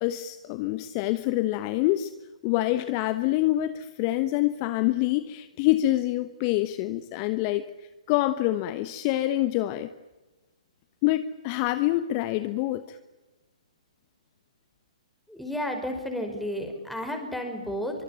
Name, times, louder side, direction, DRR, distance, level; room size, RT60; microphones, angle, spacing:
voice 1, 0.0-2.1 2.4-7.7 8.1-9.9 11.0-13.0, left 15 dB, 35° left, 11 dB, 1.2 m, -26 dB
voice 2, 15.3-18.0, equal, ahead, 4 dB, 5.3 m, -32 dB
24.5 x 24.0 x 9.0 m, 1.1 s
figure-of-eight pair, 130°, 4 cm